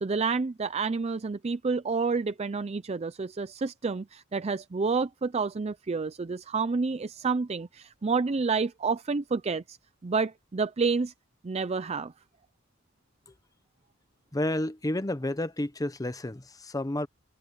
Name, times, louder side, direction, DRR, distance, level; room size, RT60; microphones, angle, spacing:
voice 1, 0.0-9.8 10.0-11.1 11.4-12.1, right 4 dB, 30° right, 0.5 m, -29 dB
voice 2, 14.3-17.1, left 1 dB, 20° left, 0.8 m, -30 dB
head